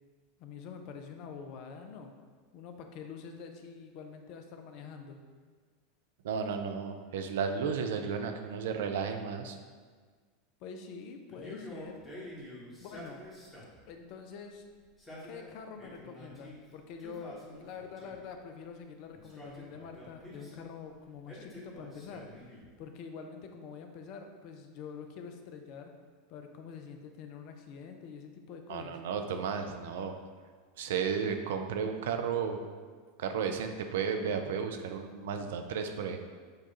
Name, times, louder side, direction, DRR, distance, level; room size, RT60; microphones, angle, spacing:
voice 1, 0.4-2.1 2.5-5.2 10.6-12.0 12.4-12.5 12.8-13.2 13.9-14.6 15.2-22.5 22.8-25.9 26.3-29.0, left 6 dB, 50° left, 5 dB, 0.4 m, -46 dB
voice 2, 6.2-9.6 28.7-30.1 30.8-32.6 33.2-36.2, right 6 dB, 60° right, 6 dB, 0.3 m, -33 dB
Male speech man speaking, 11.3-13.9 14.8-16.6 17.0-18.3 19.1-20.7 21.3-22.8, left 1 dB, 20° left, 1.1 m, -48 dB
6.4 x 2.3 x 2.8 m, 1.5 s
figure-of-eight pair, 80°, 0 cm